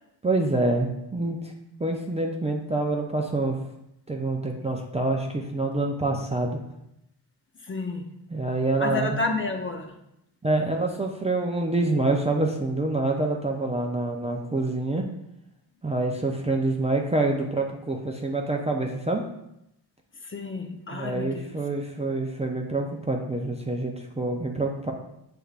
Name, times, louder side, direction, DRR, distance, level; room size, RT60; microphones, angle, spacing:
voice 1, 0.2-1.5 1.8-3.6 4.1-6.6 8.3-9.2 10.4-15.0 15.8-19.2 20.9-24.9, right 2 dB, 15° right, 1 dB, 0.4 m, -26 dB
voice 2, 7.7-8.1 8.8-10.0 20.2-21.5, left 3 dB, 25° left, 4 dB, 0.6 m, -30 dB
6.5 x 3.3 x 2.4 m, 0.83 s
cardioid pair, 75°, 46 cm